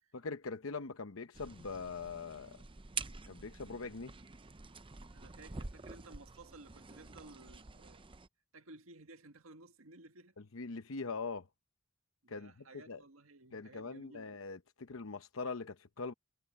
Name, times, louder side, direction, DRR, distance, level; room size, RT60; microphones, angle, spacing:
voice 1, 0.1-2.6 3.3-4.1 10.5-11.5 12.3-12.5 12.9-13.0 13.5-16.1, left 4 dB, 80° left, 0.8 m, -42 dB
sound 1, 1.3-8.3, right 4 dB, 25° right, 0.7 m, -47 dB
voice 2, 5.1-8.0 8.5-10.3 12.2-14.3, right 2 dB, 85° right, 1.7 m, -56 dB
head